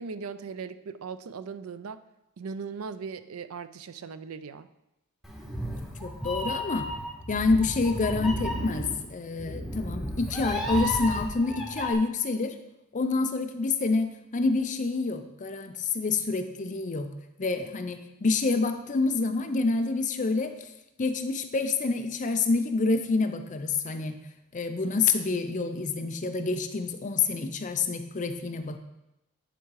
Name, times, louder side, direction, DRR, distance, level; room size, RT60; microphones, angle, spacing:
voice 1, 0.0-2.0 2.4-4.7, right 5 dB, 70° right, 13 dB, 0.4 m, -38 dB
Meow, 5.2-11.9, equal, ahead, 0.9 m, -33 dB
voice 2, 6.0-6.9 7.3-12.6 12.9-17.1 17.4-20.7 21.0-24.2 24.5-28.8, left 3 dB, 35° left, 7 dB, 0.5 m, -27 dB
10.0 x 3.7 x 4.7 m, 0.90 s
head